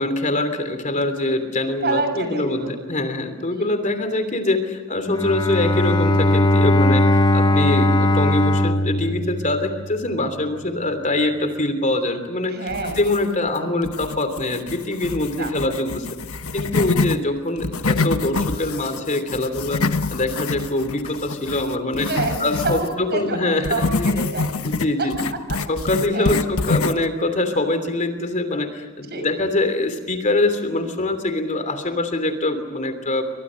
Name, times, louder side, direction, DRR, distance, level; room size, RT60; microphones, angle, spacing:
voice 1, 0.0-22.1 22.4-23.8 24.6-33.2, left 2 dB, 35° left, 8 dB, 3.1 m, -24 dB
voice 2, 1.8-2.7 3.5-3.6 12.5-13.0 13.6-13.7 15.4-15.5 16.8-16.9 22.0-24.5 25.0-25.1 26.1-26.4 29.1-29.3, right 3 dB, 50° right, 7 dB, 6.3 m, -27 dB
Bowed string instrument, 5.1-10.1, left 1 dB, 20° left, 1.1 m, -19 dB
sound 1, 12.7-13.5 13.8-17.2 17.6-22.9 23.6-27.1, left 3 dB, 75° left, 1.2 m, -26 dB
29.5 x 25.0 x 6.4 m, 1.3 s
head